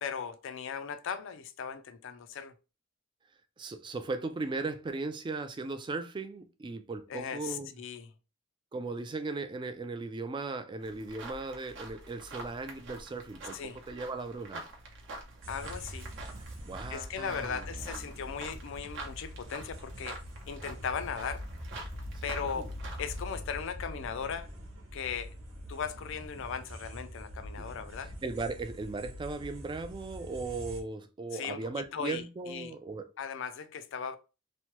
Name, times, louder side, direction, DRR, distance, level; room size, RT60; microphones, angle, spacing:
voice 1, 0.0-2.5 7.1-8.1 13.5-13.8 15.5-16.1 16.9-20.2 20.5-21.5 22.2-22.7 23.0-24.5 24.9-25.3 25.7-28.1 31.3-31.6 31.9-32.7 33.2-34.2, left 6 dB, 65° left, 0.4 m, -38 dB
voice 2, 3.6-7.7 8.7-14.6 16.7-18.2 22.1-22.7 28.0-33.1, right 3 dB, 25° right, 0.3 m, -37 dB
sound 1, 10.8-23.4, right 2 dB, 60° right, 0.7 m, -47 dB
sound 2, 15.4-30.8, equal, 85° right, 1.0 m, -44 dB
3.0 x 2.1 x 2.9 m
head